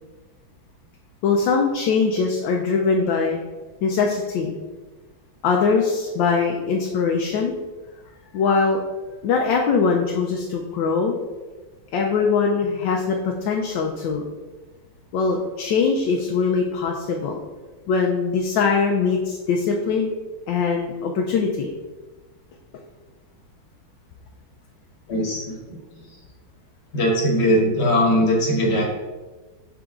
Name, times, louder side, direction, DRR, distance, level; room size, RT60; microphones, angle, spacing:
voice 1, 1.2-3.4 3.8-4.5 5.4-7.5 8.3-8.8 9.2-11.2 11.9-14.2 15.1-17.4 17.9-20.1 20.5-21.7, left 5 dB, 75° left, 1 dB, 1.3 m, -22 dB
voice 2, 25.1-25.8 26.9-28.8, equal, 35° left, -2 dB, 1.3 m, -20 dB
7.0 x 3.9 x 3.6 m, 1.3 s
omnidirectional pair, 2.2 m